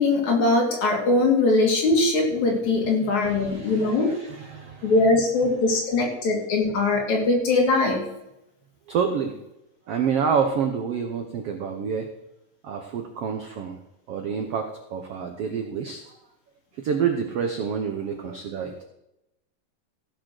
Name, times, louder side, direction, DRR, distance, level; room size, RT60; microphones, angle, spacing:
voice 1, 0.0-4.1 4.8-8.1, left 2 dB, 55° left, 0 dB, 4.0 m, -21 dB
voice 2, 2.8-4.9 8.9-9.3 9.9-12.1 12.6-13.8 14.1-16.0 16.8-18.8, right 6 dB, 70° right, 5 dB, 1.4 m, -28 dB
15.5 x 6.4 x 6.3 m, 0.88 s
omnidirectional pair, 4.0 m